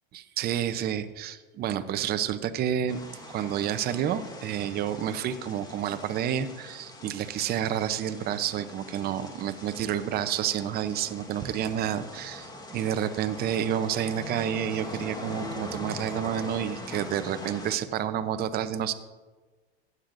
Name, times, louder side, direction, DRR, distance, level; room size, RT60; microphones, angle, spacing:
voice 1, 0.1-3.0 3.3-18.9, right 9 dB, 30° right, 10 dB, 0.7 m, -29 dB
sound 1, 2.9-17.8, left 1 dB, 10° left, 1.3 m, -42 dB
15.5 x 9.7 x 2.6 m, 1.3 s
supercardioid pair, 125°, 31 cm